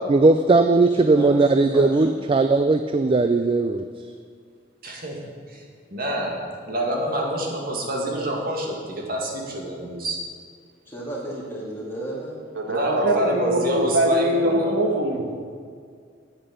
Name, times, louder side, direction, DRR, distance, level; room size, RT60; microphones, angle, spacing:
voice 1, 0.1-3.8, right 3 dB, 30° right, 9 dB, 0.3 m, -18 dB
voice 2, 0.9-2.2 10.9-12.4, right 1 dB, 15° left, -5 dB, 2.7 m, -33 dB
voice 3, 4.8-5.2 5.5-5.6 5.9-6.4 6.7-10.2 12.7-14.7, equal, 50° right, -1 dB, 2.0 m, -27 dB
voice 4, 12.6-15.3, right 1 dB, 80° right, 2 dB, 1.4 m, -23 dB
8.9 x 8.7 x 6.9 m, 2.1 s
head